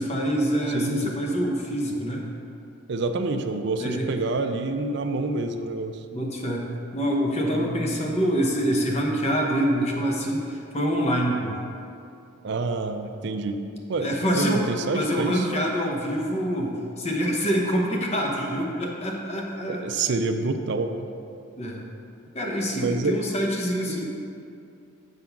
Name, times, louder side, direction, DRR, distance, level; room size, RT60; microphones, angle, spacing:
voice 1, 0.0-2.2 3.8-4.1 6.1-6.7 6.9-11.6 14.0-14.7 14.9-19.9 21.6-21.8 22.3-24.0, equal, 30° left, 0 dB, 0.9 m, -26 dB
voice 2, 0.7-1.1 2.9-6.0 7.5-8.2 12.4-13.6 13.9-15.5 19.7-21.1 22.8-23.2 23.9-24.0, right 3 dB, 60° right, 7 dB, 0.4 m, -27 dB
8.1 x 3.8 x 5.8 m, 2.6 s
head